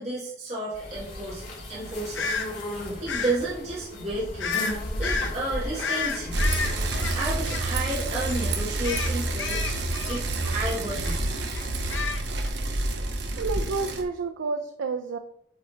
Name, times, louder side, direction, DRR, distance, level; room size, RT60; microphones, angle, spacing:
voice 1, 0.0-1.4 1.7-2.3 3.0-4.7 5.0-6.4 7.1-9.8 10.1-11.2, right 2 dB, 35° right, -8 dB, 1.3 m, -32 dB
sound 1, 0.7-7.0, left 1 dB, 45° left, 1.9 m, -35 dB
sound 2, 2.1-2.5 3.1-3.4 4.4-4.7 5.0-5.3 5.8-8.0 8.3-8.5 8.8-10.7 11.0-11.2 11.5-12.5, left 5 dB, 80° left, 0.8 m, -31 dB
Bicycle, 6.3-14.0, right 2 dB, 65° right, 0.8 m, -28 dB
voice 2, 13.4-15.2, right 4 dB, 90° right, 7 dB, 0.4 m, -30 dB
8.6 x 3.2 x 3.9 m, 0.71 s
head